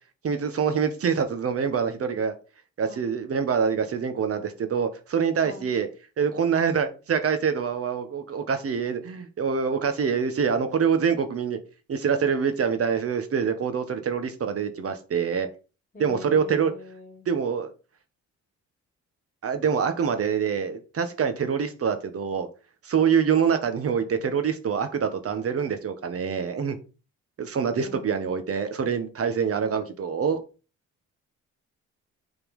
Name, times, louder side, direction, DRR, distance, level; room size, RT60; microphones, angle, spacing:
voice 1, 0.2-2.3 2.8-5.9 6.2-11.6 11.9-15.5 16.0-16.7 17.3-17.7 19.4-22.5 22.8-26.8 27.4-30.4, right 6 dB, 50° right, 8 dB, 1.5 m, -25 dB
voice 2, 5.4-5.8 15.9-17.3 27.7-28.5 29.8-30.1, left 3 dB, 25° left, 1 dB, 3.1 m, -45 dB
7.2 x 4.4 x 5.4 m, 0.33 s
cardioid pair, 90°, 30 cm